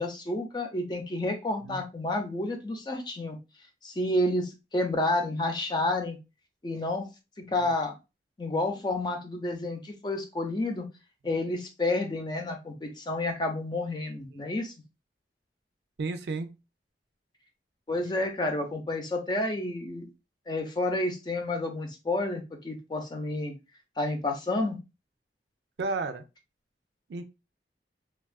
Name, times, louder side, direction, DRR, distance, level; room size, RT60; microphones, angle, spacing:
voice 1, 0.0-3.4 3.8-6.2 6.6-7.1 7.4-8.0 8.4-10.8 11.2-14.7 17.9-20.0 20.5-23.5 24.0-24.8, left 2 dB, 25° left, 4 dB, 0.5 m, -30 dB
voice 2, 16.0-16.5 25.8-26.2 27.1-27.2, right 3 dB, 70° right, 9 dB, 0.4 m, -33 dB
3.3 x 2.3 x 2.2 m, 0.27 s
head